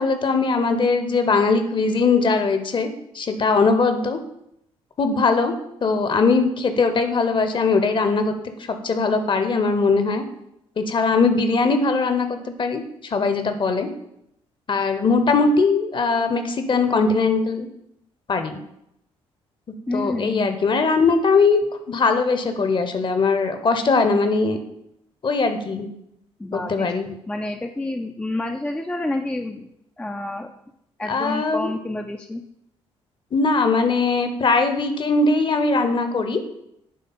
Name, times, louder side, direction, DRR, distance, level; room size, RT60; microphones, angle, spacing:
voice 1, 0.0-2.9 3.1-4.2 5.0-5.5 5.8-8.4 8.7-10.2 10.8-13.9 14.7-17.7 18.3-18.6 19.9-24.6 25.2-25.9 26.5-27.1 31.1-31.7 33.3-36.4, left 4 dB, 35° left, 8 dB, 0.9 m, -20 dB
voice 2, 19.9-20.5 26.4-26.9 27.3-29.7 30.0-30.5 31.0-32.4, left 2 dB, 10° left, 4 dB, 0.4 m, -29 dB
9.3 x 3.6 x 4.2 m, 0.79 s
figure-of-eight pair, 45°, 15 cm